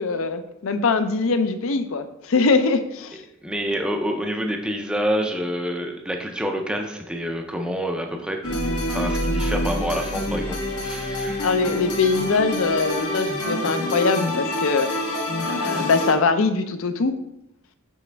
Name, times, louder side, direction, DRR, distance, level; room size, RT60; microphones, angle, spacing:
voice 1, 0.0-3.2 11.4-15.1 15.4-17.1, left 4 dB, 65° left, 10 dB, 0.5 m, -22 dB
voice 2, 3.4-8.6 8.9-11.5, equal, 5° right, 3 dB, 0.4 m, -27 dB
sound 1, 8.4-16.1, left 1 dB, 85° left, 1.2 m, -26 dB
7.3 x 4.2 x 3.3 m, 0.83 s
head